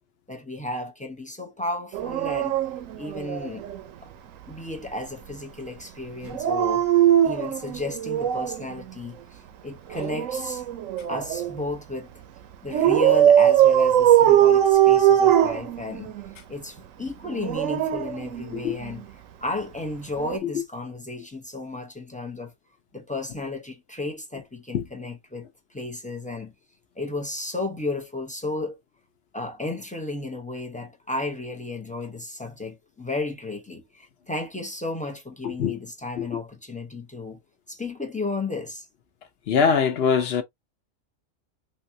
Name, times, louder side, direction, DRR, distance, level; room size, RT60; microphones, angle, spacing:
voice 1, 0.3-2.6 3.0-3.6 4.0-4.1 4.5-6.8 7.2-10.7 11.1-12.1 12.6-16.1 16.5-19.0 19.4-22.5 22.9-26.5 27.0-28.8 29.3-37.4 37.7-38.9, left 2 dB, 10° left, 0.3 m, -33 dB
Dog, 1.9-3.8 6.2-8.6 9.9-11.6 12.7-16.3 17.3-18.9 20.2-20.4, right 11 dB, 80° right, 1.0 m, -20 dB
voice 2, 35.4-35.8 36.2-36.4 39.5-40.4, left 6 dB, 60° left, 0.8 m, -22 dB
4.0 x 2.3 x 2.6 m
omnidirectional pair, 1.4 m